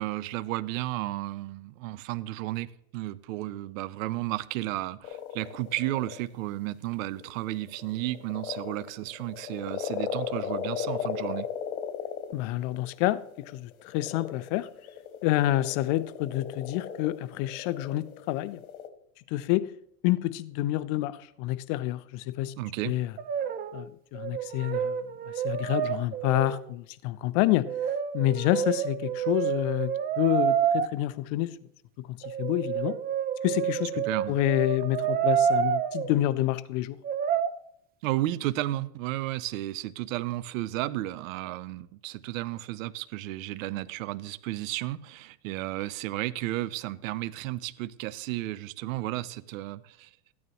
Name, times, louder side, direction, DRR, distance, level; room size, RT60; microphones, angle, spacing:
voice 1, 0.0-11.5 22.6-23.0 34.1-34.4 38.0-50.1, right 16 dB, 65° right, 0.7 m, -33 dB
sound 1, 5.0-6.2 7.2-18.9, left 8 dB, 75° left, 1.5 m, -36 dB
voice 2, 12.3-14.7 15.2-18.6 19.3-19.7 20.0-22.5 22.8-23.1 23.7-27.7 28.1-31.6 32.0-32.9 33.4-37.0, left 15 dB, 45° left, 0.6 m, -28 dB
Brass instrument, 23.2-23.9 24.1-26.7 27.7-30.9 32.2-36.1 37.0-37.5, right 8 dB, 20° right, 0.5 m, -28 dB
14.0 x 9.5 x 3.0 m
supercardioid pair, 130°, 43 cm